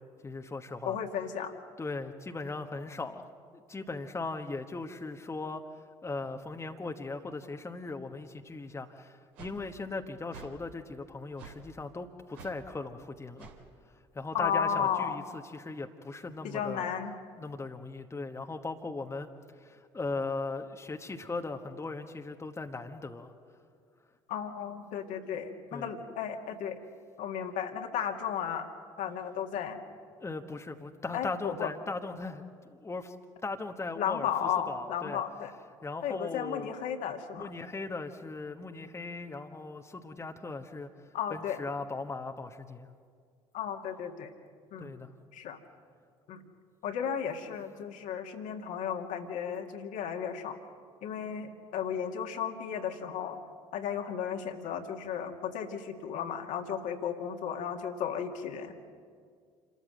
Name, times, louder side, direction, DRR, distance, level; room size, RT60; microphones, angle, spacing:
voice 1, 0.2-1.0 1.8-13.5 13.9-16.9 17.4-19.3 19.5-23.3 25.7-25.9 30.2-33.1 33.4-35.2 35.8-36.7 37.4-42.9 44.8-45.1, left 3 dB, 20° left, 5 dB, 1.2 m, -38 dB
voice 2, 0.9-1.5 14.3-15.2 16.4-17.1 24.3-26.8 27.2-28.7 29.0-29.8 31.1-31.7 34.0-35.5 36.0-37.5 41.1-41.6 43.5-44.3 44.7-44.9 45.3-45.6 46.3-46.4 46.8-50.6 51.0-53.4 53.7-58.7, left 8 dB, 55° left, 4 dB, 1.9 m, -34 dB
sound 1, 9.4-9.6 10.3-10.5 11.4-11.6 12.3-12.6 13.4-13.6, right 6 dB, 65° right, 2.5 m, -48 dB
27.5 x 13.5 x 7.7 m, 2.1 s
figure-of-eight pair, 55°, 15 cm